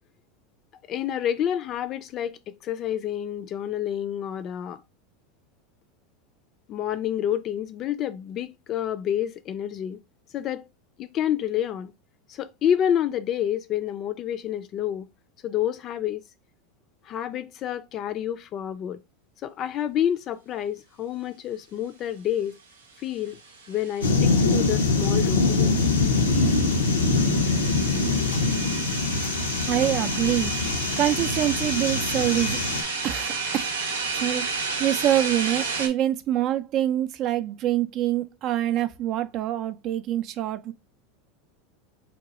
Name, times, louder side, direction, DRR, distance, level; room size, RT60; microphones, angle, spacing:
voice 1, 0.9-4.8 6.7-10.0 10.3-10.7 11.0-11.9 12.3-15.1 15.4-16.2 17.0-19.0 19.4-22.6 23.0-23.4 23.7-25.8, left 10 dB, 40° left, 0.4 m, -28 dB
sound 1, 23.3-35.9, right 4 dB, 85° right, 0.6 m, -32 dB
sound 2, 24.0-32.8, left 3 dB, 85° left, 0.6 m, -23 dB
voice 2, 29.7-30.5 31.0-32.6 33.0-33.7 34.1-34.4 34.8-40.7, right 12 dB, 45° right, 0.4 m, -25 dB
2.9 x 2.2 x 4.0 m
hypercardioid pair, 90°, 0 cm